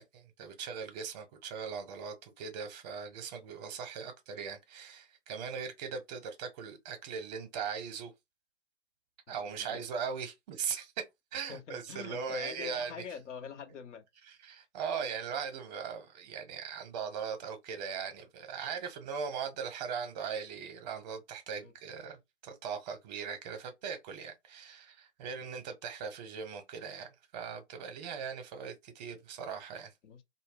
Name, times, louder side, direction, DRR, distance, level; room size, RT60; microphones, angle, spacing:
voice 1, 0.0-8.1 9.3-10.9 11.3-13.0 14.3-29.9, right 6 dB, 35° right, 0.7 m, -39 dB
voice 2, 9.3-9.8 11.5-14.0 21.6-21.7 25.4-25.5 30.0-30.2, left 6 dB, 70° left, 0.7 m, -45 dB
2.1 x 2.0 x 3.4 m
hypercardioid pair, 130°, 37 cm